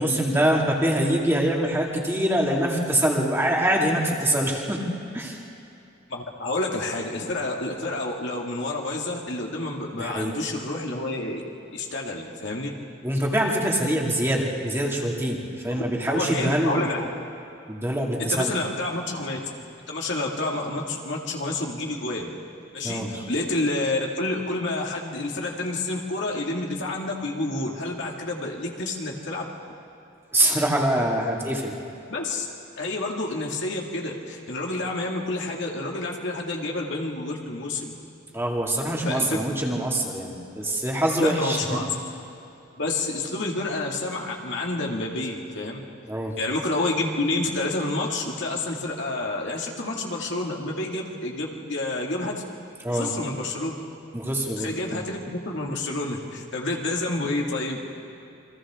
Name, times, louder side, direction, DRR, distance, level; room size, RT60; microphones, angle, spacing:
voice 1, 0.0-4.8 5.1-5.4 10.0-10.3 13.0-16.9 17.7-18.5 22.8-23.2 30.3-31.8 38.3-41.9 46.1-46.3 52.8-53.1 54.1-55.0, right 1 dB, 15° right, -2 dB, 2.5 m, -24 dB
voice 2, 6.1-11.4 11.7-12.7 16.1-17.0 18.2-19.4 19.9-22.3 22.7-29.5 32.1-32.5 32.8-38.0 39.0-39.3 41.2-41.9 42.8-45.8 46.4-52.4 52.9-53.7 54.6-57.9, left 2 dB, 65° left, -1 dB, 2.4 m, -29 dB
28.5 x 24.0 x 3.8 m, 2.7 s
head